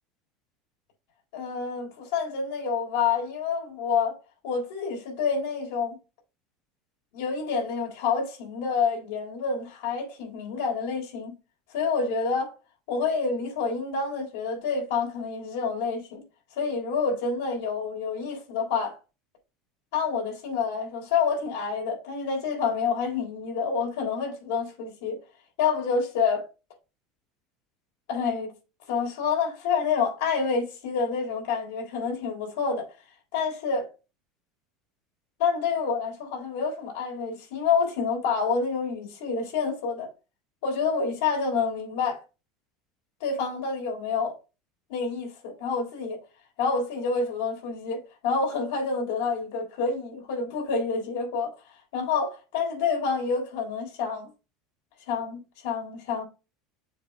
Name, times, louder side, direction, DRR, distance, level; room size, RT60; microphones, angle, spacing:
voice 1, 1.3-4.2 4.4-6.0 7.1-11.3 11.7-12.5 12.9-16.2 16.6-19.0 19.9-25.2 25.6-26.4 28.1-28.5 28.9-32.9 33.3-33.9 35.4-40.1 40.6-42.2 43.2-44.3 44.9-46.2 46.6-51.5 51.9-54.3 55.1-56.2, left 5 dB, 85° left, 3.7 m, -28 dB
7.2 x 3.4 x 5.2 m
supercardioid pair, 135°, 0 cm